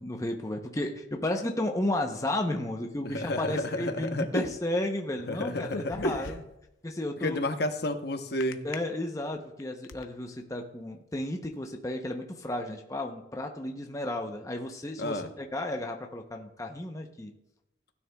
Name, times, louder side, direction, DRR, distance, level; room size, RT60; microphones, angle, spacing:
voice 1, 0.0-6.3 6.8-7.5 8.6-17.3, left 1 dB, 15° left, 3 dB, 0.7 m, -33 dB
voice 2, 3.0-4.4 5.3-6.3 7.2-8.6 15.0-15.3, left 1 dB, 55° left, 7 dB, 0.9 m, -31 dB
sound 1, 5.5-6.7 8.4-8.8 9.4-10.0, left 3 dB, 85° left, 0.7 m, -40 dB
16.0 x 9.7 x 2.3 m, 0.88 s
head